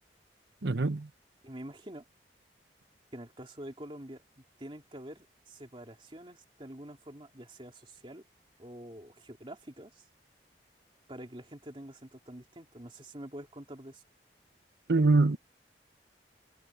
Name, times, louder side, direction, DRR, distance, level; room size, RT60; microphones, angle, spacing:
voice 1, 0.6-1.1 14.9-15.4, right 3 dB, 75° right, 1.0 m, -24 dB
voice 2, 1.4-2.0 3.1-8.2 8.6-10.0 11.1-14.0, right 1 dB, 30° right, 3.1 m, -46 dB
head